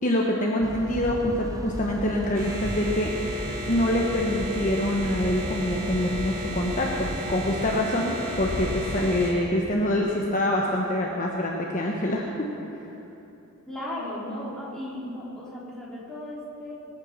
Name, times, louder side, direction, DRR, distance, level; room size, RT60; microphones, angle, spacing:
voice 1, 0.0-12.3, left 1 dB, 35° left, -1 dB, 1.1 m, -25 dB
sound 1, 0.6-7.8, right 2 dB, 15° right, 0.3 m, -36 dB
sound 2, 2.3-9.3, left 1 dB, 40° right, 3.3 m, -34 dB
sound 3, 8.2-9.9, left 1 dB, 90° left, 0.9 m, -35 dB
voice 2, 13.7-16.7, left 1 dB, 5° left, -9 dB, 3.7 m, -35 dB
21.5 x 8.4 x 6.6 m, 3.0 s
head